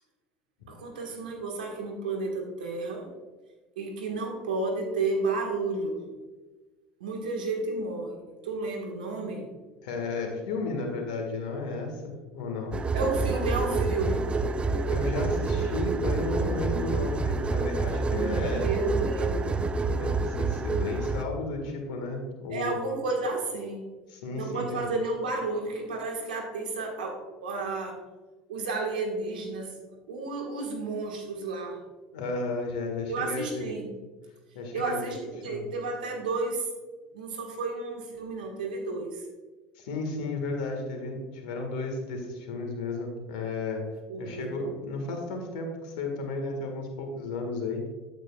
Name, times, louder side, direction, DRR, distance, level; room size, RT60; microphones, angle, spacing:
voice 1, 0.7-3.1 3.7-6.1 7.0-8.2 8.4-9.5 12.9-14.4 18.1-19.5 22.5-23.9 24.4-28.0 28.5-29.8 30.1-31.8 33.1-33.9 34.7-36.7 37.1-39.2 44.1-44.5, right 3 dB, 90° right, 1 dB, 1.6 m, -32 dB
voice 2, 9.8-12.8 14.9-18.6 19.5-22.8 24.1-24.9 32.1-33.7 34.5-35.2 35.4-35.7 39.8-43.8 44.2-47.9, left 3 dB, 75° left, 3 dB, 1.7 m, -33 dB
sound 1, 12.7-21.2, right 3 dB, 25° right, 0.5 m, -28 dB
8.8 x 8.6 x 2.4 m, 1.2 s
hypercardioid pair, 80°, 5 cm